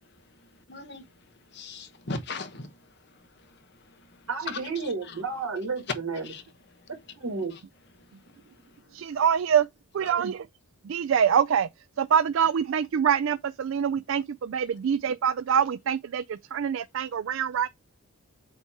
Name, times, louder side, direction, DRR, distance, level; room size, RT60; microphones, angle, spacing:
voice 1, 0.0-5.2 5.9-6.4 6.7-7.2 7.5-7.6 8.0-9.2 14.7-14.8, left 3 dB, 50° left, 1.0 m, -41 dB
voice 2, 4.3-6.2 7.2-7.5, right 4 dB, 90° right, 2.3 m, -31 dB
voice 3, 8.9-9.7 9.9-10.5 10.9-11.7 12.0-17.7, right 8 dB, 65° right, 0.3 m, -25 dB
7.8 x 2.9 x 4.6 m
head